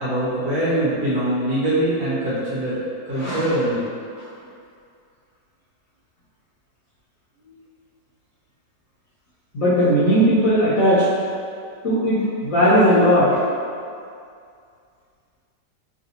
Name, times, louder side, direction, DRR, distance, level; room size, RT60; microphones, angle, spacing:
voice 1, 0.0-2.8 3.1-3.9, right 1 dB, 65° right, -9 dB, 1.4 m, -23 dB
voice 2, 9.5-11.1 11.8-13.4, equal, 60° left, -10 dB, 0.9 m, -17 dB
3.2 x 2.6 x 2.7 m, 2.3 s
omnidirectional pair, 1.9 m